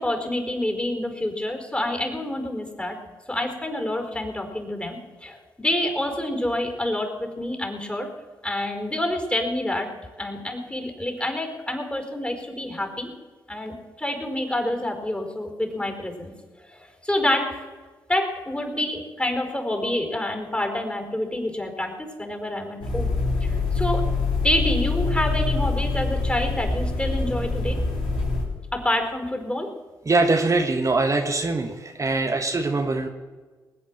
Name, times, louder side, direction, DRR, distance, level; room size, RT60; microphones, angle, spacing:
voice 1, 0.0-3.0 3.3-8.1 8.4-9.9 10.2-13.1 13.5-16.3 16.7-17.6 18.1-23.1 23.4-24.1 24.4-27.8 28.7-29.7, left 1 dB, 15° left, 4 dB, 4.6 m, -27 dB
sound 1, 22.8-28.4, left 3 dB, 80° left, 5.1 m, -25 dB
voice 2, 30.0-33.1, right 3 dB, 35° right, 4 dB, 1.5 m, -22 dB
20.0 x 8.4 x 7.5 m, 1.4 s
supercardioid pair, 45°, 9 cm